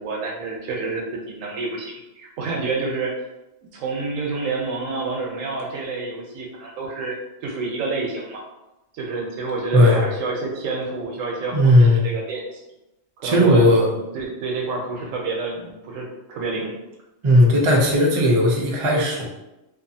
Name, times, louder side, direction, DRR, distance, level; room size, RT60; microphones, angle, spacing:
voice 1, 0.0-3.2 3.7-8.4 8.9-12.6 13.2-16.7, right 3 dB, 85° right, 0 dB, 1.0 m, -28 dB
voice 2, 11.5-12.1 13.2-13.9 17.2-19.3, left 1 dB, 50° right, -2 dB, 0.3 m, -16 dB
2.7 x 2.4 x 2.6 m, 0.96 s
omnidirectional pair, 1.3 m